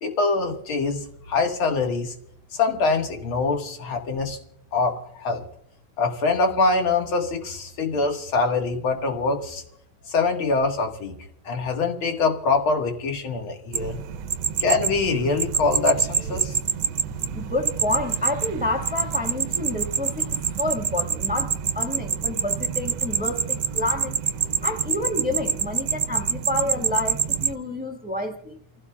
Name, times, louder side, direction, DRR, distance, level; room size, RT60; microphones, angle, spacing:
voice 1, 0.0-2.1 2.5-4.4 4.7-5.4 6.0-9.6 10.1-11.2 11.4-14.0 14.6-16.6, left 3 dB, 85° left, 2.5 m, -24 dB
sound 1, 13.7-27.5, right 8 dB, 70° right, 1.3 m, -26 dB
voice 2, 17.3-24.2 24.6-28.6, left 2 dB, 5° right, 1.3 m, -29 dB
28.5 x 16.0 x 2.3 m
omnidirectional pair, 2.2 m